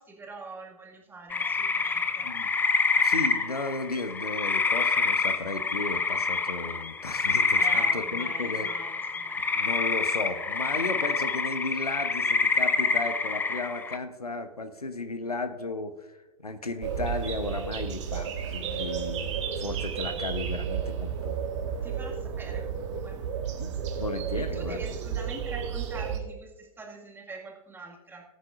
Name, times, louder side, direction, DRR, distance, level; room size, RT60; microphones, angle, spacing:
voice 1, 0.0-2.3 7.6-9.4 21.8-23.2 24.3-28.2, right 3 dB, 10° right, 0 dB, 2.0 m, -44 dB
sound 1, 1.3-14.0, left 4 dB, 10° left, 0.6 m, -27 dB
voice 2, 3.0-8.7 9.5-21.4 23.6-24.8, left 2 dB, 85° left, 10 dB, 0.9 m, -34 dB
sound 2, 16.8-26.2, right 7 dB, 50° right, 1.6 m, -32 dB
19.0 x 9.2 x 2.5 m, 1.1 s
figure-of-eight pair, 95°, 19 cm